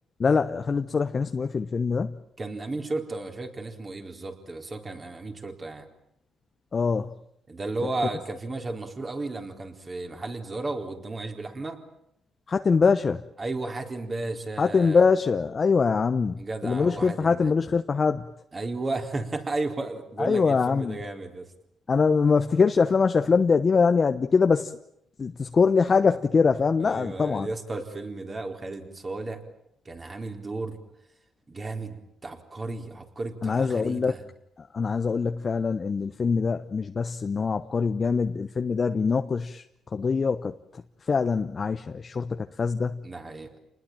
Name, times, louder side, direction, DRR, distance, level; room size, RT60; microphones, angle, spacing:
voice 1, 0.2-2.1 6.7-7.1 12.5-13.2 14.6-18.3 20.2-21.0 21.9-24.7 25.2-27.5 33.4-34.1 34.6-39.6 39.9-43.0, left 5 dB, 40° left, 1.0 m, -23 dB
voice 2, 2.4-5.9 7.5-11.8 13.4-15.0 16.4-17.5 18.5-21.5 26.8-29.4 29.8-30.8 31.5-34.2 43.0-43.5, right 2 dB, 30° right, 4.3 m, -34 dB
28.0 x 20.5 x 9.1 m
cardioid pair, 90°, 0 cm